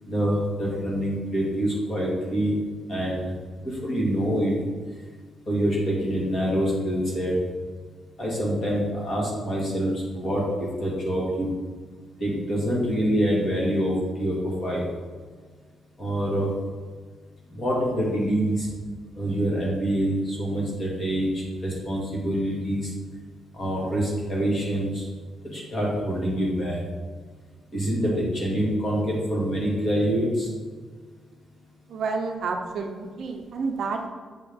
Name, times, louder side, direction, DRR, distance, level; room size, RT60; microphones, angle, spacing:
voice 1, 0.0-2.5 2.9-3.3 3.6-4.5 5.5-7.3 8.2-11.5 12.2-14.9 16.0-16.5 17.5-18.7 19.1-22.9 23.5-25.0 25.5-26.8 27.7-30.5, equal, 30° left, -4 dB, 1.7 m, -26 dB
voice 2, 31.9-34.1, right 4 dB, 55° right, 3 dB, 0.5 m, -29 dB
7.5 x 3.7 x 3.5 m, 1.5 s
cardioid pair, 165°, 0 cm